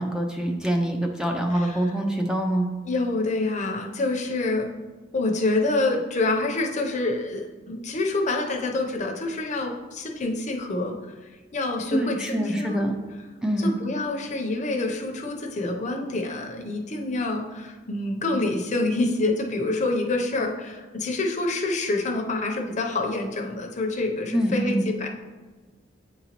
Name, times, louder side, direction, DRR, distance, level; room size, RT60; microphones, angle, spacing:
voice 1, 0.0-2.7 11.9-12.9 13.4-13.7 24.3-24.8, right 1 dB, 5° right, 1 dB, 0.4 m, -25 dB
voice 2, 2.8-4.7 5.1-11.0 11.5-12.9 13.6-25.1, left 2 dB, 40° left, 2 dB, 0.6 m, -27 dB
8.6 x 3.9 x 2.9 m, 1.4 s
head